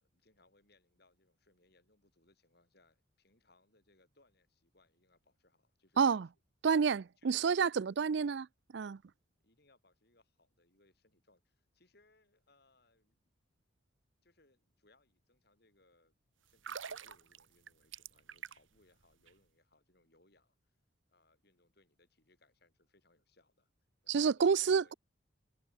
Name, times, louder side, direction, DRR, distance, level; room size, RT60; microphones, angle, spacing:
voice 1, 0.0-6.3 6.7-6.8 7.2-7.7 8.3-8.4 9.4-13.2 14.2-16.1 16.4-23.7 24.0-25.0, left 2 dB, 55° left, 5.2 m, -71 dB
voice 2, 6.6-8.4 8.7-9.0 24.1-24.9, right 6 dB, 60° right, 0.4 m, -29 dB
sound 1, 16.5-18.8 19.1-19.3, right 7 dB, 80° right, 1.1 m, -46 dB
head